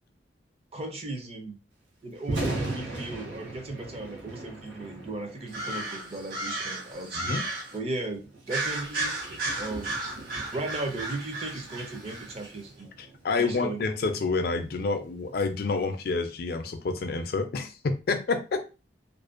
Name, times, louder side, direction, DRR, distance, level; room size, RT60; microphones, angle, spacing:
voice 1, 0.7-1.6 2.0-7.4 7.7-9.1 9.6-10.0 10.5-12.9 13.4-14.1, right 2 dB, 35° right, 4 dB, 0.5 m, -36 dB
Thunder, 2.1-16.3, right 2 dB, 80° right, 0.7 m, -40 dB
sound 1, 5.5-7.8 8.5-12.5, right 2 dB, 50° right, 1.1 m, -34 dB
voice 2, 13.0-18.7, left 4 dB, 55° left, 7 dB, 0.4 m, -28 dB
2.5 x 2.1 x 2.4 m, 0.31 s
head